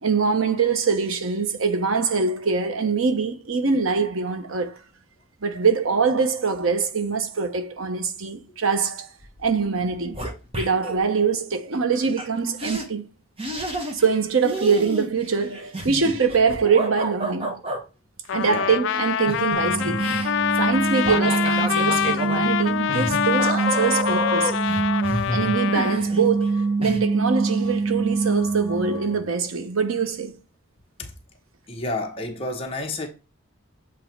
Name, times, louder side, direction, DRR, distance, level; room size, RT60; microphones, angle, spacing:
voice 1, 0.0-4.8 5.4-9.1 9.4-10.2 10.5-13.1 13.9-17.6 18.3-20.1 20.6-24.5 25.3-30.4, right 5 dB, 85° right, 0.9 m, -23 dB
sound 1, 9.2-9.5 9.8-11.0 12.2-12.3 12.6-12.9 13.4-14.2 14.4-17.8 18.9-26.5 26.8-27.0, equal, 25° right, 1.2 m, -30 dB
Trumpet, 18.3-26.0, left 9 dB, 60° left, 0.3 m, -25 dB
voice 2, 18.3-18.7 31.7-33.1, left 2 dB, 30° left, 1.2 m, -30 dB
sound 2, 19.5-29.2, right 4 dB, ahead, 1.5 m, -26 dB
7.6 x 3.1 x 4.5 m
head